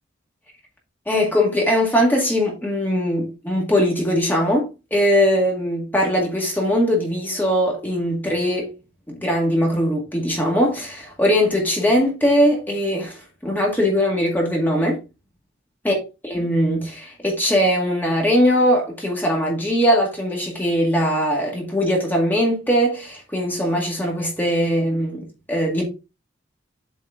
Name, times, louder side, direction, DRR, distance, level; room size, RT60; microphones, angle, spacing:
voice 1, 1.1-8.7 9.1-15.0 15.8-16.0 16.2-25.8, equal, 10° left, 2.0 m, -20 dB
7.9 x 4.4 x 3.8 m
head